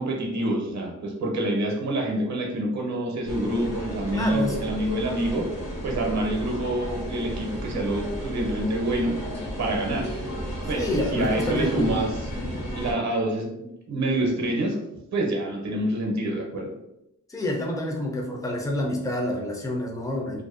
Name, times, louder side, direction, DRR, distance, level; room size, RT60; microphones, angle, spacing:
voice 1, 0.0-5.5 5.8-9.2 9.6-10.1 10.7-12.1 12.8-14.8 15.1-16.7, right 1 dB, 60° right, 1 dB, 0.6 m, -27 dB
sound 1, 3.3-12.9, equal, 55° left, 0.9 m, -33 dB
voice 2, 4.1-4.6 10.7-12.0 17.3-20.4, left 1 dB, 10° left, 0 dB, 0.4 m, -28 dB
2.5 x 2.1 x 2.4 m, 0.86 s
wide cardioid pair, 120°, 31 cm